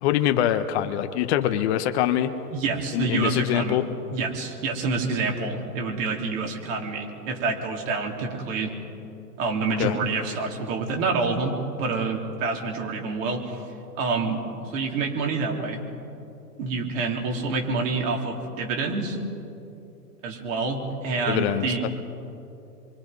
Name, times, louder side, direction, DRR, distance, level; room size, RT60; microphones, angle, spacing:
voice 1, 0.0-2.3 2.9-3.8 9.8-9.9 21.3-21.7, left 12 dB, 40° left, 9 dB, 1.1 m, -24 dB
voice 2, 2.5-3.8 4.1-8.7 9.4-11.5 11.8-13.6 14.0-14.4 14.7-15.8 16.6-19.2 20.2-21.9, right 4 dB, 50° right, 0 dB, 3.9 m, -27 dB
27.5 x 23.5 x 5.4 m, 2.8 s
hypercardioid pair, 120°, 48 cm